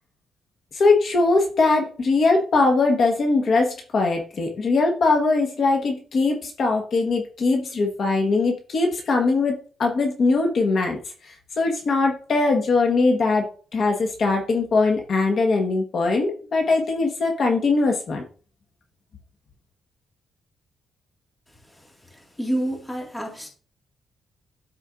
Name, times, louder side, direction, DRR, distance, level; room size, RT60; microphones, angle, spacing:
voice 1, 0.7-11.0 11.2-18.2, left 3 dB, 50° left, 1.2 m, -21 dB
voice 2, 22.4-23.5, right 1 dB, 10° left, 1.9 m, -27 dB
12.5 x 4.4 x 2.5 m
cardioid pair, 145°, 0 cm